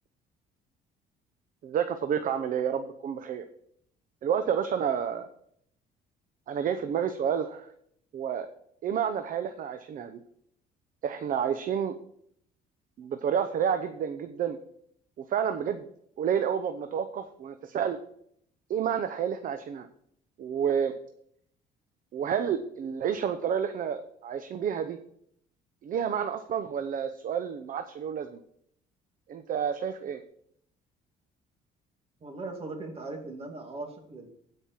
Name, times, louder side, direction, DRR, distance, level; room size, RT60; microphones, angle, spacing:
voice 1, 1.6-3.4 4.2-5.3 6.5-7.7 8.1-8.5 8.8-10.2 11.0-11.9 13.0-14.6 15.3-15.9 16.2-18.0 18.7-19.9 20.4-20.9 22.1-25.0 25.8-28.4 29.3-30.2, right 8 dB, 55° right, 8 dB, 0.8 m, -29 dB
voice 2, 32.2-34.3, right 2 dB, 35° right, 4 dB, 2.5 m, -39 dB
16.0 x 5.4 x 4.4 m, 0.68 s
cardioid pair, 110°, 17 cm